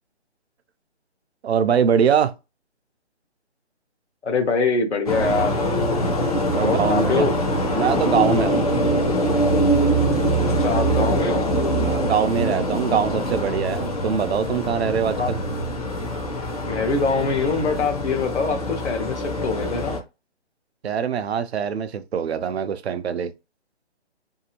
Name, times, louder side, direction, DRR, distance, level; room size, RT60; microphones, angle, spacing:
voice 1, 1.4-2.3 6.5-7.3 7.7-8.6 11.8-15.4 20.8-23.3, right 7 dB, 65° right, 0.5 m, -23 dB
voice 2, 4.2-5.6 6.6-7.4 10.6-11.5 15.2-15.3 16.7-20.0, left 4 dB, 75° left, 0.9 m, -24 dB
sound 1, 5.1-20.0, equal, 35° left, 0.5 m, -23 dB
2.7 x 2.4 x 2.8 m
figure-of-eight pair, 155°, 34 cm